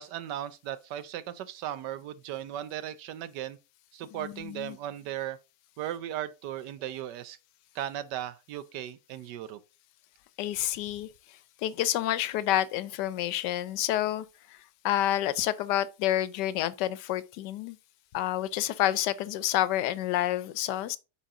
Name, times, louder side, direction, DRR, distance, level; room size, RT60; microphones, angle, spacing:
voice 1, 0.0-3.6 3.9-5.4 5.8-7.4 7.7-9.6, right 11 dB, 85° right, 1.3 m, -37 dB
voice 2, 4.2-4.8 10.4-11.1 11.6-14.3 14.8-17.8 18.1-21.0, left 13 dB, 90° left, 1.2 m, -28 dB
8.3 x 3.9 x 3.7 m
omnidirectional pair, 1.8 m